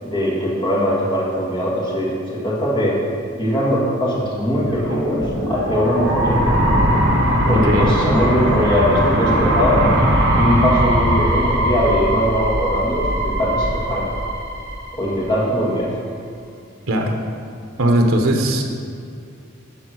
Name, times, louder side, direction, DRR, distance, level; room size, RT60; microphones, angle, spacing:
voice 1, 0.0-3.0 3.3-6.4 7.5-9.8 10.3-14.1 14.9-15.9, equal, 25° left, -6 dB, 1.7 m, -20 dB
sound 1, 4.4-15.4, right 1 dB, 55° right, 1.5 m, -20 dB
voice 2, 7.4-7.9 16.9-17.2 17.8-18.6, right 1 dB, 75° right, 3 dB, 0.9 m, -18 dB
11.5 x 3.9 x 6.2 m, 2.4 s
head